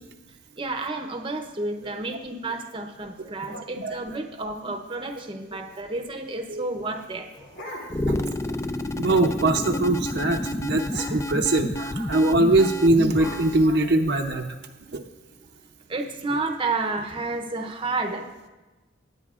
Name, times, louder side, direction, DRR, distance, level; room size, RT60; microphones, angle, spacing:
voice 1, 0.6-7.3 15.9-18.3, right 3 dB, 25° right, 5 dB, 0.7 m, -30 dB
voice 2, 3.2-4.0 6.5-6.6 7.9-8.3 9.0-14.5 14.9-15.0, right 2 dB, 55° right, 4 dB, 0.6 m, -22 dB
sound 1, 7.0-8.2 8.6-8.7 9.0-9.3 9.6-9.8 10.1-10.3 10.8-11.4 12.3-14.4, left 1 dB, 70° left, 2.9 m, -42 dB
sound 2, 7.9-13.7, left 1 dB, 15° left, 0.3 m, -29 dB
18.5 x 9.1 x 2.4 m, 1.2 s
head